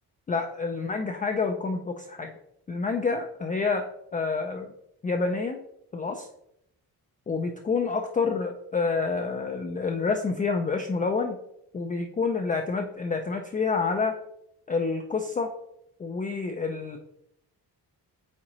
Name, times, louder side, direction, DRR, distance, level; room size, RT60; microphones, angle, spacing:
voice 1, 0.3-2.3 2.7-3.9 4.1-4.7 5.0-5.6 5.9-6.3 7.3-11.4 11.7-14.2 14.7-15.5 16.0-17.0, left 4 dB, 20° left, 4 dB, 0.3 m, -28 dB
8.5 x 3.7 x 3.0 m, 0.78 s
wide cardioid pair, 160°, 39 cm